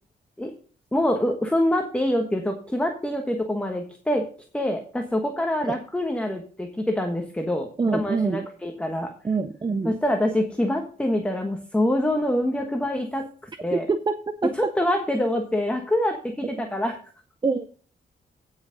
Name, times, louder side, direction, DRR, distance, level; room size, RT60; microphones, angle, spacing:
voice 1, 0.9-4.3 4.5-9.1 9.8-13.9 14.5-17.0, left 1 dB, 5° left, 4 dB, 1.2 m, -25 dB
voice 2, 7.8-8.5 9.2-9.9 13.7-14.7 17.4-17.7, right 4 dB, 25° right, 11 dB, 0.6 m, -25 dB
17.0 x 5.7 x 3.9 m, 0.43 s
wide cardioid pair, 110°, 17 cm